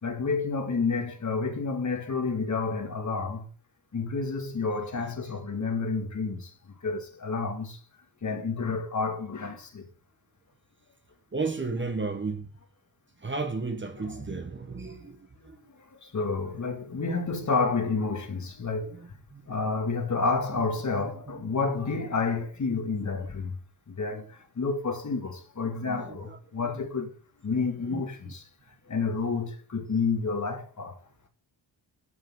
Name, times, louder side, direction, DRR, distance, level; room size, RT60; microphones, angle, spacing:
voice 1, 0.0-3.5 3.9-6.5 6.8-7.8 8.2-9.8 14.0-14.2 14.9-15.1 15.6-15.7 16.0-19.0 19.5-23.5 23.9-27.1 27.4-28.4 28.9-31.0, left 4 dB, 40° left, 2.3 m, -30 dB
voice 2, 11.3-12.5 13.2-15.2 15.4-15.6 18.9-19.0 19.3-19.4 21.3-21.4 25.9-26.4 26.6-26.7 27.9-28.0, right 3 dB, 25° right, 1.3 m, -33 dB
12.0 x 8.6 x 3.9 m
wide cardioid pair, 150°, 44 cm